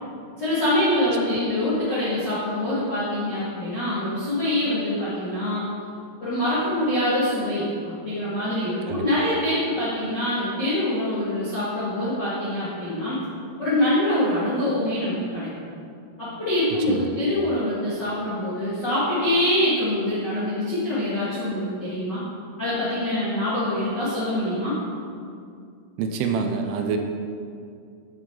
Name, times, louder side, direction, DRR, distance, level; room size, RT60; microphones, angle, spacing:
voice 1, 0.4-5.7 6.2-13.2 13.6-15.5 16.2-22.2 22.6-24.7, left 1 dB, 75° left, -12 dB, 0.9 m, -24 dB
voice 2, 26.0-27.0, right 6 dB, 85° right, 5 dB, 3.0 m, -26 dB
10.5 x 6.2 x 3.8 m, 2.4 s
omnidirectional pair, 5.7 m